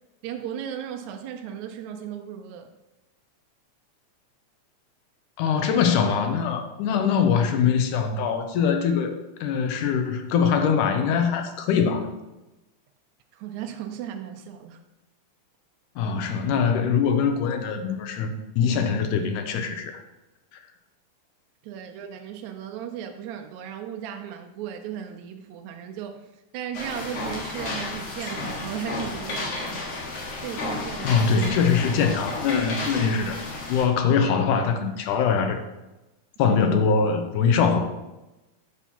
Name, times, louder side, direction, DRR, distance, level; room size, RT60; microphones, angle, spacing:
voice 1, 0.2-2.7 13.3-14.8 21.6-29.9 30.4-31.3 36.5-36.6, right 9 dB, 80° right, 5 dB, 1.8 m, -36 dB
voice 2, 5.4-12.1 16.0-20.0 31.0-33.4 33.7-35.6 36.4-37.8, left 6 dB, 85° left, 6 dB, 2.3 m, -23 dB
sound 1, 26.7-33.8, left 3 dB, 60° left, 2.3 m, -32 dB
Trumpet, 26.7-31.7, equal, 25° left, 3.2 m, -48 dB
9.0 x 7.0 x 2.9 m, 1.0 s
omnidirectional pair, 3.6 m